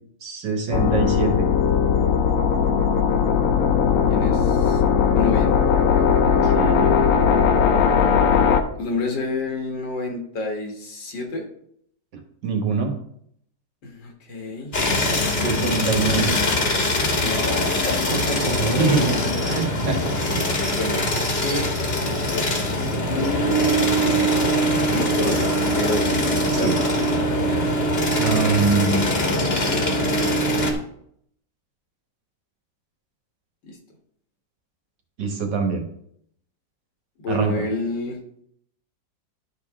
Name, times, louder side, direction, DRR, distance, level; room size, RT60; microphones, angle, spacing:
voice 1, 0.2-1.5 6.4-7.0 12.4-12.9 15.3-16.3 18.4-19.2 19.5-20.5 26.5-26.7 28.2-29.0 35.2-35.8 37.3-37.5, right 4 dB, 75° right, 3 dB, 2.1 m, -24 dB
sound 1, 0.7-8.6, left 7 dB, 60° left, 0.9 m, -18 dB
voice 2, 4.1-4.8 5.2-5.6 8.8-11.5 13.8-14.7 17.2-19.0 19.9-20.3 20.6-21.7 22.0-22.5 22.7-23.7 24.0-24.2 24.6-26.2 26.6-26.7 28.8-29.6 33.6-33.8 37.2-38.2, left 2 dB, 80° left, 3 dB, 2.2 m, -29 dB
sound 2, 14.7-30.7, equal, 35° left, 1.4 m, -22 dB
11.0 x 6.1 x 3.6 m, 0.69 s
omnidirectional pair, 1.9 m